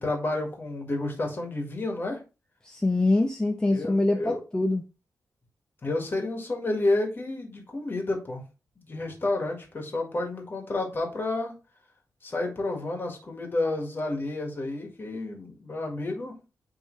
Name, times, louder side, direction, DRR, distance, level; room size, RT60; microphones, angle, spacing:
voice 1, 0.0-2.2 3.7-4.4 5.8-8.4 8.9-11.5 12.2-16.3, left 2 dB, 35° left, 1.9 m, -30 dB
voice 2, 2.6-4.8, left 2 dB, 10° left, 0.5 m, -24 dB
9.6 x 3.5 x 3.2 m
wide cardioid pair, 160°, 7 cm